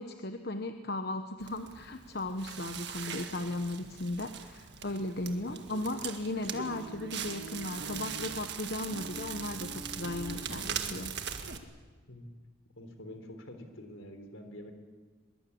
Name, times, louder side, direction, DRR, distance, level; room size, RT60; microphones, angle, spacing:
voice 1, 0.0-11.1, left 2 dB, 50° left, 7 dB, 1.0 m, -36 dB
Crackle, 1.4-11.6, right 6 dB, 50° right, 1.7 m, -40 dB
voice 2, 12.8-14.7, left 1 dB, 70° left, 6 dB, 3.6 m, -46 dB
22.5 x 22.5 x 8.6 m, 1.5 s
head